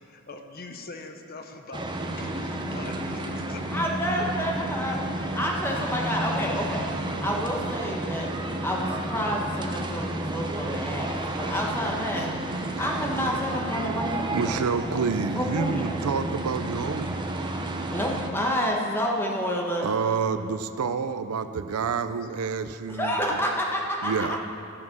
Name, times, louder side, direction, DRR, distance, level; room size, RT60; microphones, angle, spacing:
voice 1, 0.0-3.8 13.1-14.0 18.9-19.6 22.2-22.3, left 3 dB, 45° left, 5 dB, 0.7 m, -44 dB
sound 1, 1.7-18.3, right 1 dB, 20° right, 0.7 m, -31 dB
voice 2, 3.7-5.0 5.3-8.3 8.6-12.3 12.8-14.7 15.3-15.9 17.9-19.9 22.9-24.4, equal, 10° left, -1 dB, 1.2 m, -29 dB
voice 3, 13.7-17.4 19.8-23.4 24.0-24.4, right 5 dB, 85° right, 11 dB, 0.5 m, -29 dB
12.0 x 7.3 x 6.0 m, 2.6 s
head